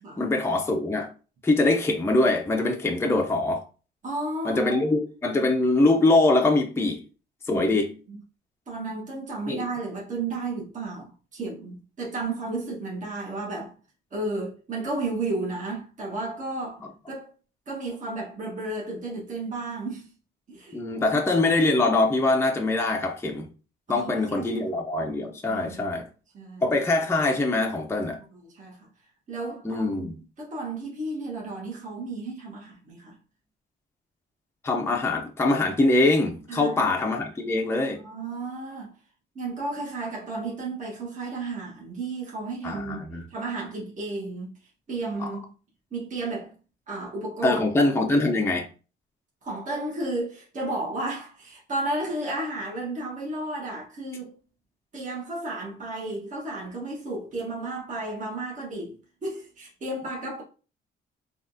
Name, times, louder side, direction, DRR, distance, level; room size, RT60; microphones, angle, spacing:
voice 1, 0.2-1.1 1.4-3.6 4.4-7.0 7.5-8.0 9.5-9.6 20.7-23.5 23.9-26.1 26.6-28.2 29.6-30.1 34.6-38.0 42.6-43.2 45.2-45.3 47.4-48.7, left 2 dB, 10° left, 0.5 m, -23 dB
voice 2, 4.0-4.9 7.5-7.8 8.1-8.2 8.7-13.7 14.1-16.8 17.1-17.3 17.7-20.1 20.5-21.5 23.9-24.7 25.5-25.9 26.3-26.6 28.3-28.9 29.3-30.1 30.4-33.2 36.5-36.9 37.9-38.9 39.3-43.0 43.3-44.6 44.9-45.5 45.9-46.5 46.9-47.7 49.4-54.3 54.9-60.4, right 2 dB, 40° right, 1.2 m, -33 dB
3.5 x 2.4 x 2.6 m
cardioid pair, 90°, 20 cm